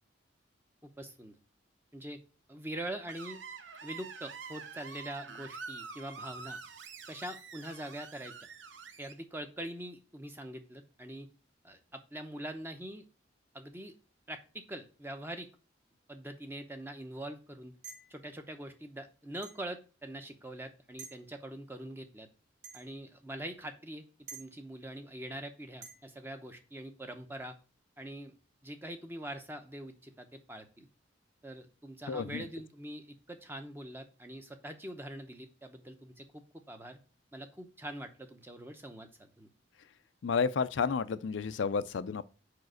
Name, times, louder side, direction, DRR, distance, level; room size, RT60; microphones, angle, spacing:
voice 1, 0.8-1.4 1.9-2.2 2.5-3.4 3.8-6.6 7.1-8.3 9.0-11.3 11.6-13.1 13.5-13.9 14.3-15.5 16.1-17.7 18.1-22.3 22.7-24.0 24.3-27.6 28.0-28.4 28.6-30.9 31.4-37.0 37.3-39.5, right 1 dB, 10° right, 0.8 m, -43 dB
Screech, 3.1-9.1, right 5 dB, 75° right, 0.7 m, -46 dB
sound 1, 17.8-18.2 19.4-19.6 21.0-21.2 22.6-22.9 24.3-24.5 25.8-26.0, right 5 dB, 50° right, 1.9 m, -48 dB
voice 2, 32.1-32.4 40.2-42.2, left 5 dB, 75° left, 0.4 m, -31 dB
5.1 x 4.8 x 6.3 m
head